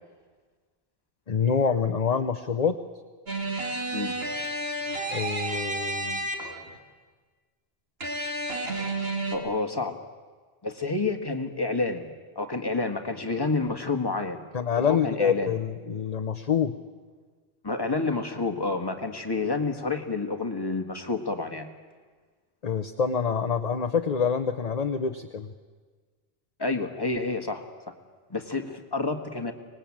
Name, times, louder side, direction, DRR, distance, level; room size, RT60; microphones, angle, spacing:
voice 1, 1.3-2.8 5.1-6.2 14.5-16.7 22.6-25.5, left 6 dB, 40° left, 9 dB, 0.9 m, -26 dB
sound 1, 3.3-6.8 8.0-9.4, right 2 dB, 70° right, 2.6 m, -31 dB
voice 2, 9.3-10.0 10.6-12.1 12.3-14.4 14.8-15.5 17.6-21.7 26.6-27.7 28.3-29.5, left 3 dB, 20° left, 5 dB, 1.7 m, -29 dB
24.5 x 20.0 x 8.7 m, 1.4 s
omnidirectional pair, 1.1 m